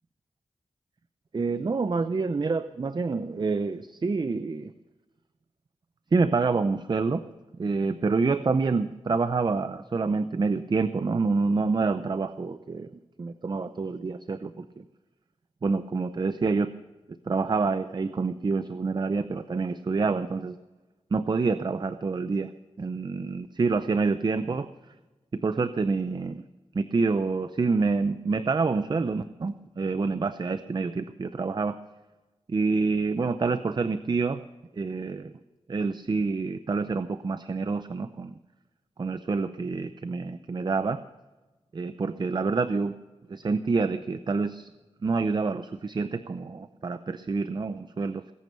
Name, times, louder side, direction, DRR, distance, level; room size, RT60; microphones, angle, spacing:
voice 1, 1.3-4.7 6.1-7.2 7.6-12.9 13.2-14.8 15.6-16.7 17.3-20.6 21.1-22.5 22.8-24.7 25.4-26.4 26.7-31.8 32.5-34.4 34.7-35.3 35.7-38.4 39.0-41.0 41.7-43.0 43.3-44.7 45.0-48.3, right 4 dB, 40° right, 11 dB, 0.6 m, -27 dB
20.0 x 9.4 x 6.8 m, 1.2 s
wide cardioid pair, 105°, 11 cm